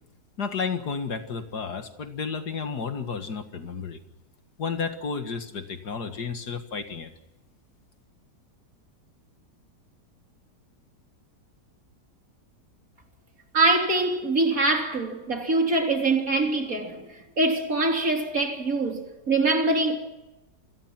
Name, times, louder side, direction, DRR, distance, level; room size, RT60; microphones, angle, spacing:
voice 1, 0.4-4.0 4.6-7.1, left 5 dB, 65° left, 2.3 m, -32 dB
voice 2, 13.5-20.0, right 2 dB, 50° right, 3.9 m, -24 dB
28.5 x 22.0 x 6.0 m
omnidirectional pair, 1.9 m